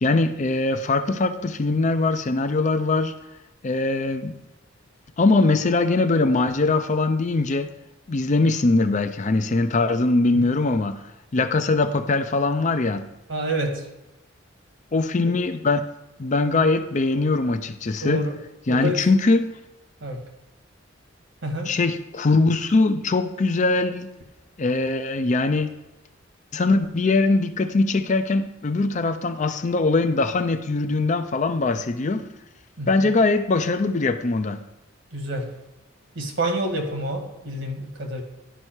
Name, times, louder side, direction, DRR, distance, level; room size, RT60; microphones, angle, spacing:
voice 1, 0.0-3.2 3.6-4.4 5.2-7.7 8.1-11.0 11.3-13.1 14.9-15.8 16.2-18.3 18.7-19.5 21.7-24.1 24.6-25.8 26.5-32.3 32.9-34.6, left 3 dB, 40° left, 0.5 m, -21 dB
voice 2, 13.3-13.9 15.2-15.3 18.0-18.3 18.7-19.0 20.0-20.2 21.4-21.7 32.8-33.1 35.1-35.5 36.1-38.2, right 1 dB, 70° right, 1.7 m, -28 dB
11.0 x 5.5 x 4.5 m
head